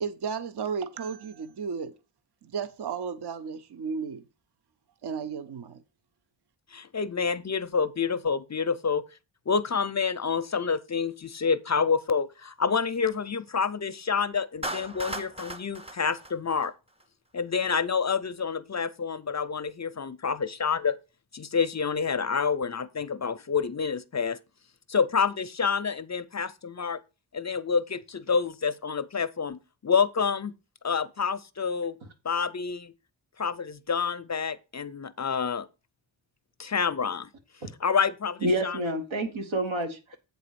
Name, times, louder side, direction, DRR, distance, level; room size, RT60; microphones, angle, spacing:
voice 1, 0.0-1.9 2.4-4.2 5.0-5.8, right 6 dB, 55° right, 0.7 m, -34 dB
voice 2, 6.7-9.0 9.5-16.7 17.3-21.0 21.3-24.4 24.9-27.0 27.3-30.5 30.8-31.9 32.2-32.9 33.4-35.7 36.6-37.3 37.8-38.8, left 5 dB, 40° left, 0.4 m, -28 dB
Clapping, 14.6-17.0, right 1 dB, 15° right, 0.7 m, -37 dB
voice 3, 38.4-40.2, right 1 dB, 85° right, 1.8 m, -28 dB
8.1 x 4.0 x 6.7 m
wide cardioid pair, 115°, 46 cm